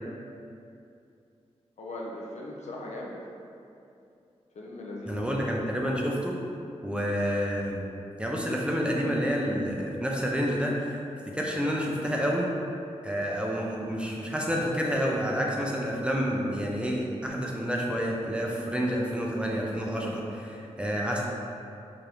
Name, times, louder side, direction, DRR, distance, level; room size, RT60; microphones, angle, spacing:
voice 1, 1.8-3.2 4.5-5.6, left 1 dB, 80° left, -3 dB, 0.6 m, -39 dB
voice 2, 5.1-6.4 6.8-7.8 8.2-10.7 11.3-12.5 13.0-21.2, equal, 10° right, -2 dB, 0.4 m, -29 dB
4.8 x 2.6 x 3.0 m, 2.6 s
wide cardioid pair, 160°, 11 cm